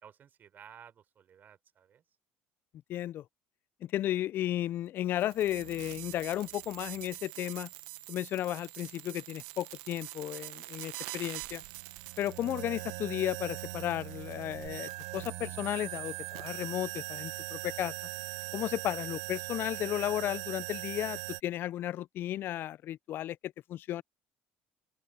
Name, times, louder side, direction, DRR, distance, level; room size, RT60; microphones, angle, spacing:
voice 1, 0.0-2.0, right 8 dB, 50° right, 3.8 m, -55 dB
voice 2, 2.9-3.2 3.8-7.7 8.1-11.6 12.2-17.9 18.5-24.0, left 13 dB, 60° left, 0.4 m, -34 dB
sound 1, 5.1-21.4, right 21 dB, 80° right, 1.0 m, -41 dB
open air
supercardioid pair, 80°, 4 cm